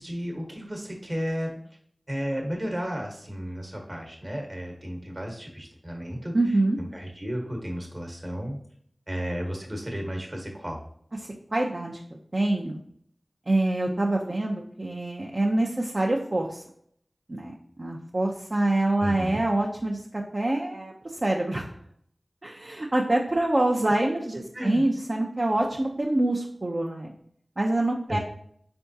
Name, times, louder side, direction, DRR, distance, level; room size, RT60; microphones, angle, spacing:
voice 1, 0.0-1.6 2.1-6.3 6.8-8.6 9.1-10.8 19.0-19.4 24.5-24.8 28.1-28.2, equal, 40° right, 1 dB, 1.1 m, -33 dB
voice 2, 6.3-6.8 11.5-12.0 12.3-12.8 13.5-16.6 17.3-20.9 21.2-21.7 22.4-27.1 27.6-28.2, right 2 dB, 55° right, -2 dB, 0.5 m, -25 dB
4.5 x 3.4 x 2.7 m, 0.65 s
wide cardioid pair, 50°, 0 cm